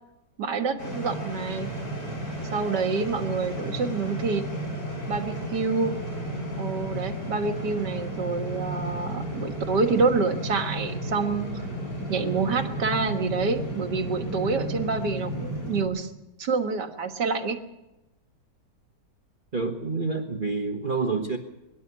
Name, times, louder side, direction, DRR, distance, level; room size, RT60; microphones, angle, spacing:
voice 1, 0.4-1.7 2.5-4.5 5.1-5.9 6.6-11.7 12.1-16.1 16.4-17.6, right 4 dB, 90° right, 6 dB, 2.2 m, -27 dB
sound 1, 0.8-15.8, right 1 dB, 85° left, 5.3 m, -33 dB
voice 2, 19.5-21.4, right 4 dB, 35° right, 2 dB, 1.4 m, -28 dB
24.0 x 11.5 x 9.7 m, 0.99 s
omnidirectional pair, 1.8 m